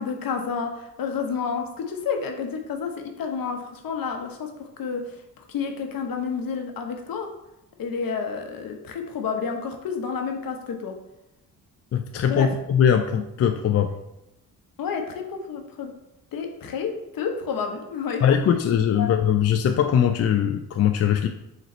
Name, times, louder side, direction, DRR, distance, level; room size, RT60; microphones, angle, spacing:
voice 1, 0.0-7.3 7.8-10.9 12.3-12.5 14.8-15.9 16.3-18.2 19.0-19.1, left 6 dB, 60° left, 4 dB, 0.9 m, -30 dB
voice 2, 11.9-13.9 18.2-21.3, left 8 dB, 40° left, 6 dB, 0.4 m, -21 dB
3.8 x 3.2 x 4.2 m, 0.87 s
supercardioid pair, 65°, 39 cm